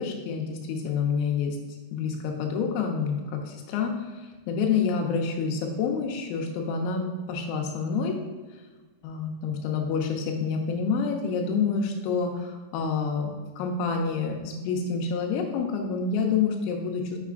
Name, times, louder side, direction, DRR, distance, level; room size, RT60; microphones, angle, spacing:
voice 1, 0.0-1.6 1.9-3.9 4.5-8.2 9.0-17.2, left 5 dB, 90° left, 2 dB, 3.5 m, -28 dB
7.1 x 6.7 x 2.5 m, 1.3 s
omnidirectional pair, 5.7 m